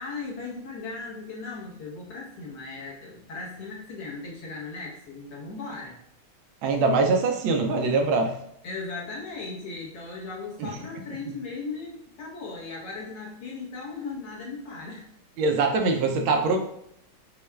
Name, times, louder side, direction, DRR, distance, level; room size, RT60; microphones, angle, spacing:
voice 1, 0.0-6.0 8.6-15.1 15.6-15.7, left 3 dB, 60° left, -4 dB, 1.5 m, -37 dB
voice 2, 6.6-8.4 10.6-10.8 15.4-16.6, right 3 dB, 80° right, 2 dB, 1.3 m, -23 dB
6.2 x 2.3 x 2.2 m, 0.75 s
omnidirectional pair, 2.3 m